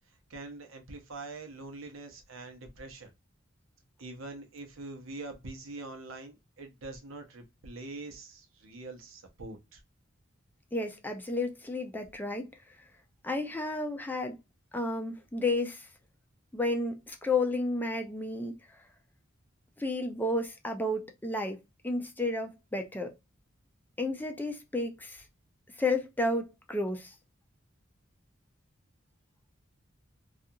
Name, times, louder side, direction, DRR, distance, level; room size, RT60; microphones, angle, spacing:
voice 1, 0.3-3.1 4.0-9.8, right 2 dB, 85° right, 0.8 m, -44 dB
voice 2, 10.7-12.4 13.2-14.4 14.7-15.9 16.5-18.6 19.8-23.1 24.0-25.2 25.8-27.1, left 2 dB, 10° left, 0.4 m, -32 dB
2.5 x 2.4 x 2.6 m
head